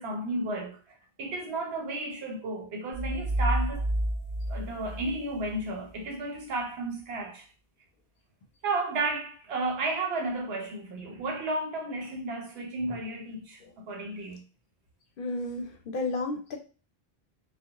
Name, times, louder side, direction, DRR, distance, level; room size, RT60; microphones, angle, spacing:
voice 1, 0.0-3.9 4.5-7.5 8.6-14.4, right 2 dB, 85° right, 0.9 m, -33 dB
sound 1, 2.9-5.6, right 1 dB, 25° left, 0.6 m, -30 dB
voice 2, 15.2-16.6, left 2 dB, 65° left, 0.7 m, -32 dB
2.4 x 2.1 x 2.8 m
omnidirectional pair, 1.0 m